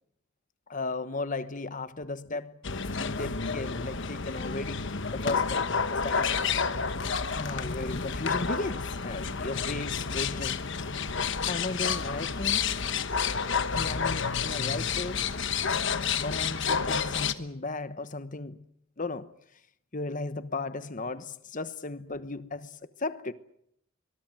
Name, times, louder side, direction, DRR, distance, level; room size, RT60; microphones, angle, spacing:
voice 1, 0.7-2.6 2.9-5.6 5.9-6.5 7.3-10.7 11.5-12.7 13.7-15.2 16.2-18.6 19.0-19.3 19.9-23.3, left 2 dB, 40° left, 1.1 m, -35 dB
sound 1, 2.6-17.3, left 6 dB, 60° left, 1.2 m, -30 dB
25.0 x 22.5 x 7.7 m
head